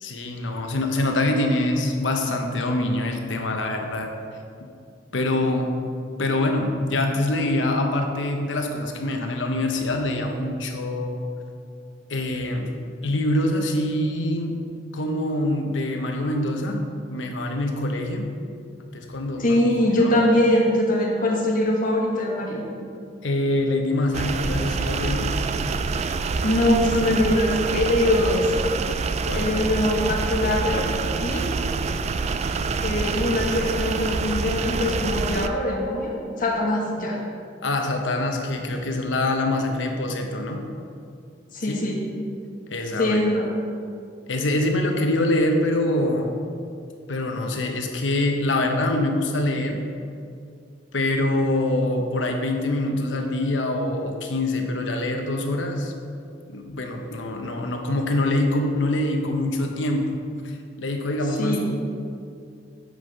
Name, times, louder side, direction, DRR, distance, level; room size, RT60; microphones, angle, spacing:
voice 1, 0.0-4.1 5.1-5.7 6.2-11.2 12.1-12.7 13.0-14.6 14.9-18.3 18.9-19.6 20.0-20.2 23.2-25.3 29.2-29.5 37.6-40.7 41.7-41.8 42.7-43.2 44.3-46.4 47.1-49.8 50.9-55.9 56.5-60.2 60.8-61.7, left 1 dB, 85° left, 3 dB, 0.9 m, -25 dB
voice 2, 19.4-22.6 26.4-28.5 29.3-30.8 31.2-31.5 32.8-37.2 41.5-42.0 43.0-43.5 61.4-61.7, left 1 dB, 50° left, -2 dB, 1.4 m, -22 dB
sound 1, 24.1-35.5, right 4 dB, 35° right, 0.3 m, -26 dB
8.1 x 4.9 x 5.3 m, 2.4 s
head